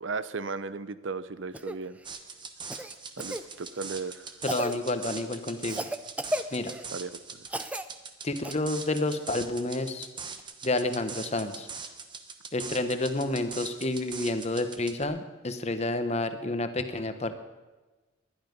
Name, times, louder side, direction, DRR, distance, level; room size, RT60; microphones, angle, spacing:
voice 1, 0.0-2.0 3.2-4.3 6.9-7.4, right 4 dB, 80° right, 14 dB, 0.7 m, -36 dB
Cough, 1.5-1.8 2.7-3.4 4.5-4.8 5.7-6.9 7.5-7.9 8.4-8.5 10.4-10.5, right 1 dB, 5° right, 0.5 m, -34 dB
sound 1, 2.0-15.0, right 5 dB, 25° right, 1.1 m, -42 dB
voice 2, 4.4-5.8 6.5-6.7 8.2-10.1 10.6-11.7 12.5-17.4, left 2 dB, 35° left, 9 dB, 1.1 m, -29 dB
20.0 x 12.0 x 5.3 m, 1.2 s
head